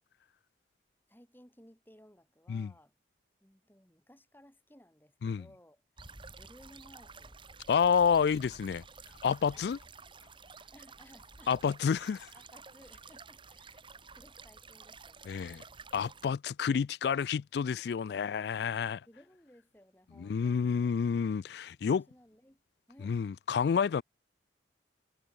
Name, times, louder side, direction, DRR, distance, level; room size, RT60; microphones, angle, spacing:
voice 1, 1.1-3.0 3.4-5.8 6.4-7.4 9.5-9.7 10.1-10.3 10.7-11.7 12.3-15.7 19.1-20.9 21.9-22.6 22.9-23.2, equal, 10° left, 4.5 m, -60 dB
sound 1, 6.0-16.3, right 4 dB, 25° right, 2.7 m, -52 dB
voice 2, 7.7-8.8 9.2-9.8 11.5-12.3 15.3-15.6 15.9-19.0 20.2-22.0 23.0-24.0, left 6 dB, 60° left, 0.3 m, -29 dB
head